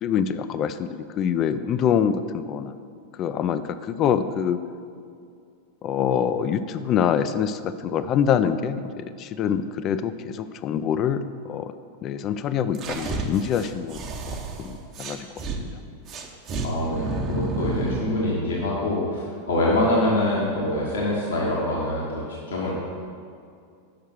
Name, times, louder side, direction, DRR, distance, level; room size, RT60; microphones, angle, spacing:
voice 1, 0.0-2.7 3.2-4.6 5.8-11.7 12.0-14.0 14.6-15.3 15.6-15.7, left 8 dB, 35° left, 12 dB, 0.4 m, -25 dB
sound 1, 12.7-15.6 16.1-18.1, right 3 dB, 30° right, 0.8 m, -30 dB
voice 2, 16.6-22.7, left 1 dB, 65° left, -5 dB, 1.2 m, -25 dB
6.7 x 5.5 x 6.2 m, 2.3 s
figure-of-eight pair, 90°, 0 cm